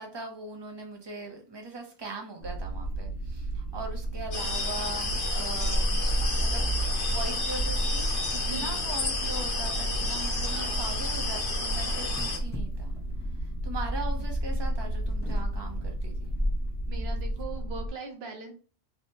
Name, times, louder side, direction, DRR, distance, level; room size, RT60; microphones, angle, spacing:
voice 1, 0.0-6.7 7.1-8.1 8.5-13.0 13.3-16.3, right 2 dB, 30° right, 2 dB, 0.6 m, -40 dB
sound 1, 2.4-17.9, right 2 dB, 55° left, 0.9 m, -35 dB
sound 2, 4.3-12.4, left 3 dB, 85° left, 1.1 m, -32 dB
sound 3, 5.0-17.4, equal, 20° left, 0.3 m, -32 dB
voice 2, 8.4-8.8 10.5-10.9 16.9-18.5, right 5 dB, 70° right, 4 dB, 1.0 m, -40 dB
3.1 x 2.1 x 2.8 m, 0.39 s
omnidirectional pair, 1.1 m